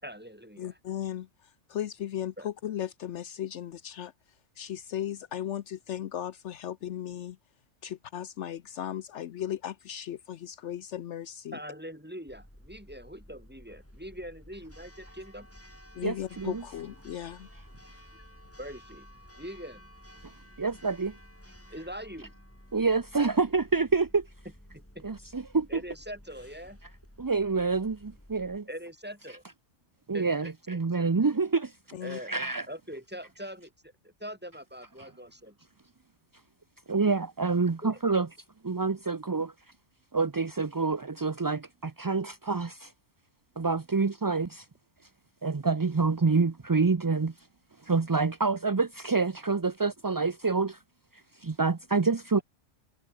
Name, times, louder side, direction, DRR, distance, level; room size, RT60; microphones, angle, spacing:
voice 1, 0.0-0.7 2.4-2.5 11.5-15.5 18.6-19.1 19.4-19.8 21.7-22.3 24.7-25.0 25.7-26.8 28.7-29.4 30.1-30.5 32.0-32.4 32.7-35.6 37.8-38.0, equal, 10° right, 6.1 m, -42 dB
voice 2, 0.6-1.3 1.7-4.1 4.6-7.4 7.8-11.6 15.9-17.5 31.9-32.2, left 10 dB, 70° left, 1.0 m, -36 dB
Church bell, 12.3-28.6, equal, 10° left, 5.2 m, -53 dB
voice 3, 16.0-16.6 20.6-21.2 22.7-24.3 25.0-25.8 27.2-28.7 30.1-31.7 32.3-32.7 36.9-38.3 38.6-39.5 40.1-42.9 43.6-44.7 45.4-47.3 47.8-50.8 51.4-52.4, right 4 dB, 30° right, 0.4 m, -27 dB
omnidirectional pair, 1.3 m